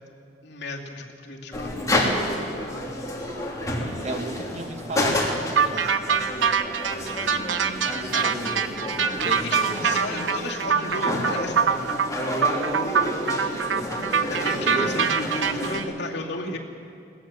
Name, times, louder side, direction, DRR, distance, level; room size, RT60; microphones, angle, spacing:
voice 1, 0.4-1.9 8.1-8.3 9.2-12.0 14.2-16.6, left 2 dB, 65° left, -1 dB, 2.4 m, -34 dB
sound 1, 1.5-15.8, left 1 dB, 20° left, 3.0 m, -30 dB
voice 2, 1.8-2.3 4.0-6.3 8.2-8.6 9.2-10.0 13.7-13.9 14.4-14.9 16.4-16.6, right 1 dB, 40° right, 5 dB, 1.5 m, -35 dB
sound 2, 5.6-15.8, right 6 dB, 85° right, 1.0 m, -24 dB
22.0 x 18.0 x 7.3 m, 2.5 s
head